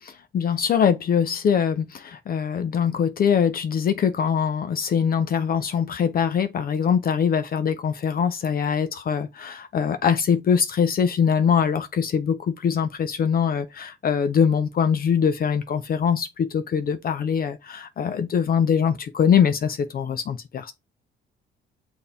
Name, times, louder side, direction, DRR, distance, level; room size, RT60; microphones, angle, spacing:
voice 1, 0.3-20.7, left 7 dB, 50° left, 0.5 m, -23 dB
6.7 x 2.6 x 2.7 m
cardioid pair, 90°, 20 cm